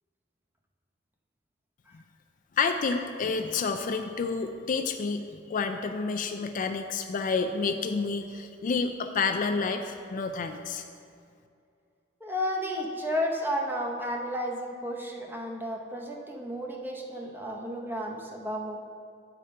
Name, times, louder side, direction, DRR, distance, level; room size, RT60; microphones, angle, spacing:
voice 1, 2.6-10.8, left 4 dB, 45° left, 6 dB, 0.3 m, -29 dB
voice 2, 12.2-18.8, equal, 10° right, 0 dB, 0.7 m, -32 dB
8.7 x 5.1 x 4.3 m, 2.4 s
head